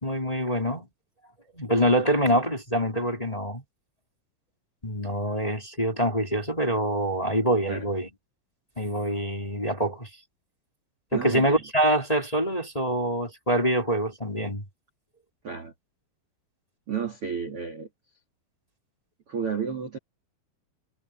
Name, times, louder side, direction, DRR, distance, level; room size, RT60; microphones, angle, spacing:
voice 1, 0.0-0.9 1.5-3.6 4.8-8.1 8.8-10.1 11.1-14.6, right 1 dB, 10° left, 3.3 m, -25 dB
voice 2, 11.1-11.6 15.4-15.7 16.9-17.9 19.3-20.0, right 6 dB, 40° right, 2.3 m, -32 dB
omnidirectional pair, 5.8 m